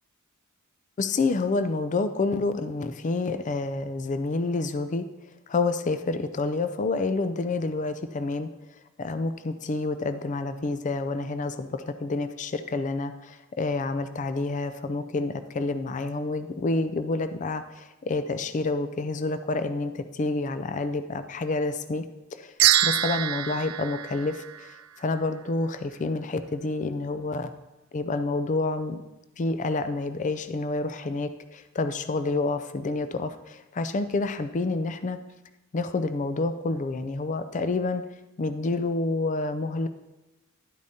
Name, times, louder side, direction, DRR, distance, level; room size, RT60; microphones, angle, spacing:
voice 1, 1.0-5.1 5.5-8.5 9.0-22.0 22.3-22.5 22.8-27.5 27.9-29.0 29.4-35.2 35.7-38.0 38.4-39.9, left 3 dB, 35° left, 10 dB, 0.4 m, -28 dB
sound 1, 22.6-25.1, right 13 dB, 75° right, 0.4 m, -25 dB
11.0 x 8.4 x 2.7 m, 1.0 s
head